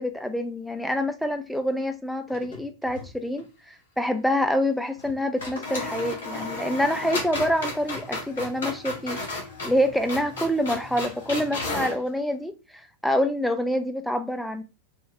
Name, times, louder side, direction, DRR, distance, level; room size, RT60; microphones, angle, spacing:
voice 1, 0.0-9.2 9.6-12.5 13.0-14.6, equal, ahead, 7 dB, 0.6 m, -26 dB
sound 1, 2.3-3.1 3.4-3.5 5.0-5.1 5.4-12.0, left 2 dB, 60° left, 1.5 m, -34 dB
4.6 x 2.7 x 3.2 m, 0.29 s
figure-of-eight pair, 90°, 0 cm